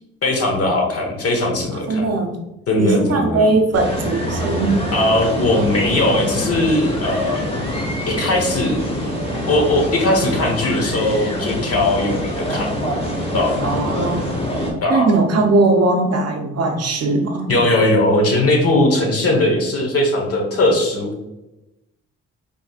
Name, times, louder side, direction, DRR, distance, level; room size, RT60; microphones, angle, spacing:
voice 1, 0.2-2.1 2.7-3.5 4.9-7.4 8.1-8.8 9.5-12.9 13.3-13.6 14.8-15.1 17.5-21.1, left 1 dB, 50° left, 2 dB, 1.2 m, -19 dB
voice 2, 1.7-2.4 2.8-4.8 13.6-14.3 14.9-17.6, right 3 dB, 55° right, 2 dB, 0.6 m, -19 dB
sound 1, 3.7-14.7, equal, 20° left, 1.1 m, -25 dB
4.9 x 3.3 x 2.4 m, 0.98 s
cardioid pair, 90°, 30 cm